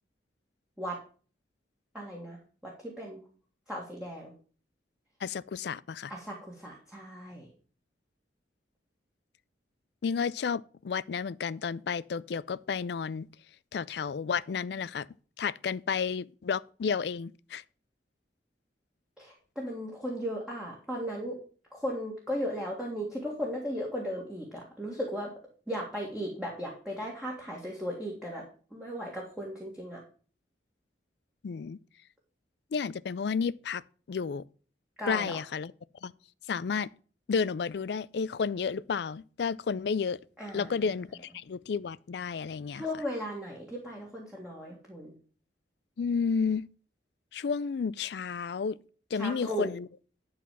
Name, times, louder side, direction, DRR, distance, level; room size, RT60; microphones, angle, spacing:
voice 1, 1.9-2.4 2.6-3.2 3.7-4.3 6.1-7.5 19.2-21.4 21.7-25.3 25.7-28.4 28.7-30.0 35.0-35.4 40.4-40.8 42.7-45.2 49.1-49.7, equal, 5° right, 1.9 m, -36 dB
voice 2, 5.2-6.1 10.0-13.3 13.7-15.1 15.4-17.6 31.4-31.8 32.7-33.8 34.1-34.4 35.1-35.7 36.0-36.1 36.5-36.9 37.3-40.2 40.5-42.9 46.0-46.6 47.3-48.8 49.1-49.9, left 5 dB, 60° left, 0.4 m, -31 dB
11.0 x 4.1 x 7.2 m
head